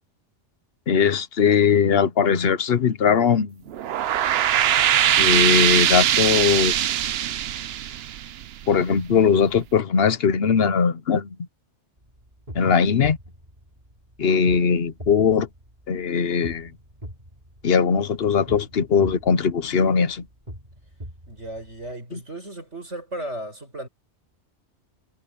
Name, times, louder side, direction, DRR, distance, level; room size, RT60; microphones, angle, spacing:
voice 1, 0.9-3.6 5.2-6.9 8.7-11.4 12.5-13.2 14.2-15.5 15.9-16.7 17.6-20.2 22.1-22.2, left 6 dB, 60° left, 1.2 m, -20 dB
sound 1, 3.7-8.9, right 11 dB, 65° right, 0.8 m, -21 dB
sound 2, 12.0-21.9, equal, 35° right, 5.5 m, -43 dB
voice 2, 21.3-23.9, right 1 dB, 80° right, 7.2 m, -35 dB
omnidirectional pair, 1.2 m